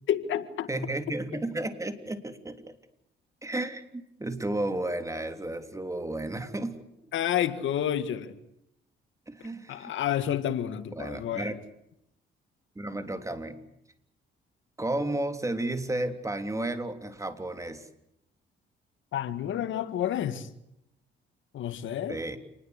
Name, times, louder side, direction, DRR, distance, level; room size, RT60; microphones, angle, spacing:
voice 1, 0.1-0.7 7.1-8.4 9.7-11.6 19.1-20.5 21.5-22.2, left 10 dB, 75° left, 1.9 m, -29 dB
voice 2, 0.7-2.8 3.4-6.8 9.3-9.9 10.9-11.5 12.7-13.7 14.8-17.9 22.1-22.4, right 1 dB, 15° right, 3.4 m, -33 dB
28.5 x 20.5 x 8.3 m
cardioid pair, 90°, 20 cm